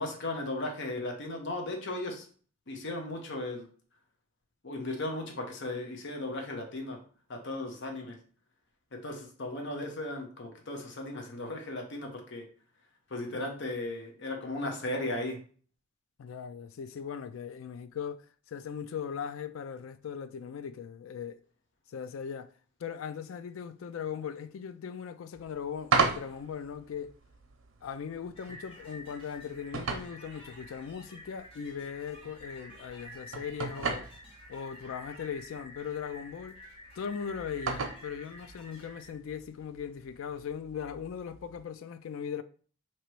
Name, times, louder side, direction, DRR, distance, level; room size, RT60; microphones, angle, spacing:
voice 1, 0.0-2.2 2.7-3.7 4.6-7.0 7.3-8.2 8.9-12.4 13.1-15.4, left 2 dB, 60° left, 0.9 m, -36 dB
voice 2, 16.2-21.4 21.9-22.5 22.8-27.1 27.8-34.1 34.5-36.6 37.0-42.4, left 7 dB, 80° left, 0.4 m, -39 dB
sound 1, 25.3-41.7, right 4 dB, 85° right, 0.7 m, -38 dB
sound 2, 28.3-39.1, equal, 30° left, 1.0 m, -50 dB
3.0 x 2.9 x 4.5 m
head